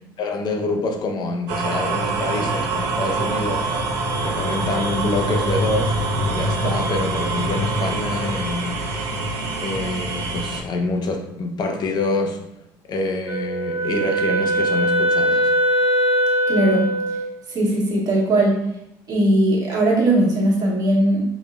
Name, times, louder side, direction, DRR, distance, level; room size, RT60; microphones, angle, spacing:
voice 1, 0.2-3.7 4.2-8.9 9.6-12.4 12.9-15.5, left 3 dB, 45° left, 3 dB, 0.6 m, -26 dB
sound 1, 1.5-10.6, right 2 dB, 90° right, 0.6 m, -24 dB
Wind instrument woodwind instrument, 13.3-17.3, right 1 dB, 20° right, 0.6 m, -21 dB
voice 2, 16.5-17.2 17.5-18.6 19.1-21.2, right 1 dB, 40° right, -4 dB, 1.3 m, -19 dB
3.2 x 3.0 x 2.3 m, 0.83 s
supercardioid pair, 90°, 10 cm